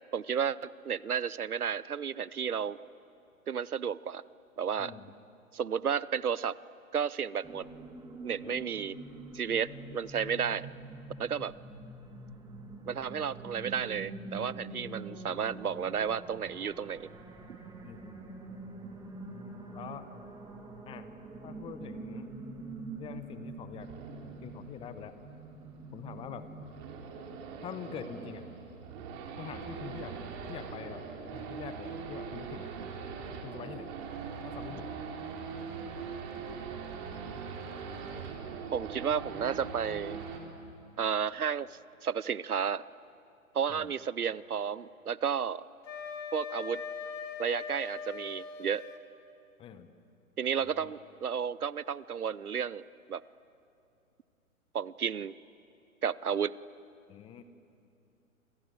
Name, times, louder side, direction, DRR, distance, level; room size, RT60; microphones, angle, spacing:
voice 1, 0.1-2.8 3.5-4.2 4.6-4.9 5.5-6.6 6.9-7.7 8.2-9.0 9.3-10.7 11.2-11.5 12.9-17.1 38.7-40.2 41.0-42.8 43.5-45.6 46.3-46.8 47.4-48.8 50.4-52.8 53.1-53.2 54.7-55.3 56.0-56.5, right 7 dB, 80° right, 20 dB, 0.8 m, -32 dB
sound 1, 7.4-26.7, right 2 dB, 10° right, 2.4 m, -45 dB
voice 2, 17.8-18.3 19.7-20.1 20.9-21.1 21.4-22.3 23.0-23.9 24.4-25.2 25.9-26.5 27.6-28.4 29.4-30.1 30.5-31.0 31.3-32.7 33.4-33.9 34.4-34.8 43.7-43.9 49.6-49.9 50.6-50.9 57.1-57.4, left 8 dB, 10° left, 11 dB, 0.9 m, -44 dB
Race car auto racing / Idling / Accelerating revving vroom, 23.8-40.4, right 5 dB, 30° right, 3.7 m, -42 dB
Wind instrument woodwind instrument, 45.8-49.0, left 6 dB, 60° left, 3.1 m, -41 dB
27.5 x 27.5 x 7.7 m, 2.6 s
figure-of-eight pair, 125°, 43 cm